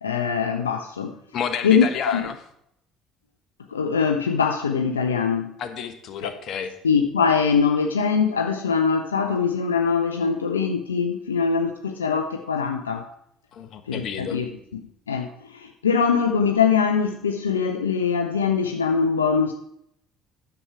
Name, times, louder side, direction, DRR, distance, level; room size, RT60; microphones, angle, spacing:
voice 1, 0.0-1.2 1.6-2.3 3.7-5.5 6.2-6.3 6.8-13.1 13.9-14.5 15.1-19.5, left 6 dB, 85° left, 5 dB, 0.4 m, -22 dB
voice 2, 1.3-2.3 5.6-6.7 13.5-14.4, left 7 dB, 55° left, 9 dB, 1.0 m, -30 dB
9.8 x 6.9 x 4.7 m, 0.75 s
figure-of-eight pair, 55°, 0 cm